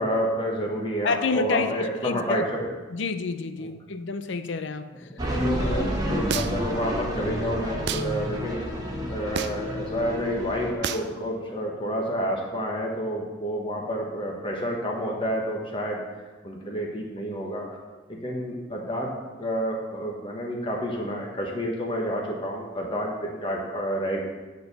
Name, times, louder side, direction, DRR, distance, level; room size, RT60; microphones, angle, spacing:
voice 1, 0.0-2.7 3.6-3.7 5.1-8.6 9.1-16.0 16.4-17.6 18.1-19.1 19.4-24.2, equal, 25° left, -1 dB, 1.3 m, -29 dB
voice 2, 1.0-2.5 2.9-4.9 5.6-5.8, left 4 dB, 60° left, 10 dB, 0.6 m, -29 dB
sound 1, 5.2-10.7, equal, 20° right, 1.2 m, -29 dB
sound 2, 6.3-6.7 7.9-8.1 9.3-9.7 10.8-11.1, right 7 dB, 55° right, 0.4 m, -29 dB
10.5 x 4.6 x 6.9 m, 1.3 s
head